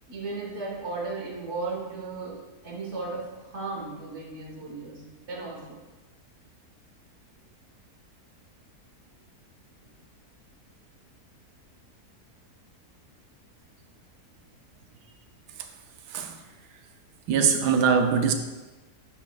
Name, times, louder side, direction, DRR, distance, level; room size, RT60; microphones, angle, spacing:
voice 1, 0.1-5.8, right 3 dB, 45° right, 1.5 m, -35 dB
voice 2, 16.1-16.4 17.3-18.3, right 6 dB, 90° right, 1.2 m, -22 dB
10.5 x 5.2 x 2.3 m
omnidirectional pair, 1.7 m